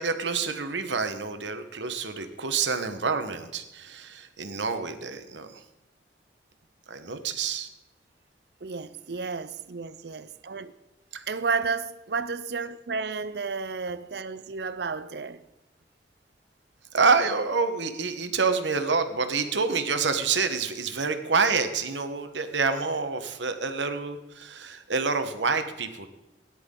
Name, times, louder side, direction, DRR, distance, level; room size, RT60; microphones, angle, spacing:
voice 1, 0.0-5.6 6.9-7.7 11.1-11.2 16.9-26.1, right 4 dB, 85° right, 1.2 m, -27 dB
voice 2, 8.6-10.7 11.3-15.4, right 4 dB, 65° right, 0.6 m, -32 dB
17.5 x 10.5 x 3.8 m
head